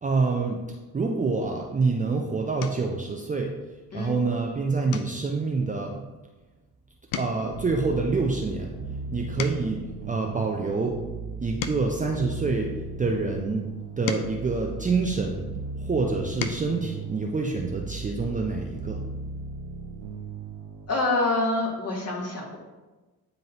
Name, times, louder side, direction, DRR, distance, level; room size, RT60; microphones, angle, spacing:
voice 1, 0.0-0.6 0.9-3.5 3.9-6.0 7.2-8.8 9.1-9.8 10.1-11.0 11.4-13.7 14.0-15.5 15.8-19.0, right 4 dB, 15° right, 0 dB, 0.6 m, -27 dB
sound 1, 1.7-2.0 2.6-3.0 3.5-3.8 4.2-4.4 4.9-6.7 7.0-9.9 10.5-13.0 13.6-15.5 16.0-16.8 18.2-18.3 18.6-18.7, left 7 dB, 50° left, 0.6 m, -39 dB
sound 2, 7.5-20.9, right 4 dB, 55° right, 0.8 m, -37 dB
voice 2, 20.9-22.6, left 2 dB, 30° left, -2 dB, 1.8 m, -26 dB
9.3 x 3.9 x 2.9 m, 1.2 s
figure-of-eight pair, 45°, 47 cm